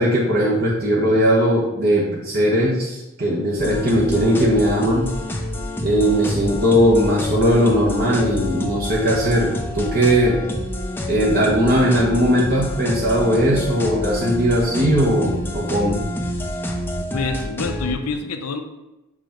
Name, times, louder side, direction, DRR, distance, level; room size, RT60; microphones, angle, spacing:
voice 1, 0.0-5.1 5.8-10.4 11.1-16.0, equal, 40° right, -4 dB, 1.0 m, -18 dB
sound 1, 3.6-17.9, left 1 dB, 10° left, 0.5 m, -28 dB
voice 2, 17.1-18.6, left 4 dB, 80° left, 6 dB, 0.6 m, -26 dB
5.7 x 4.9 x 3.8 m, 0.99 s
head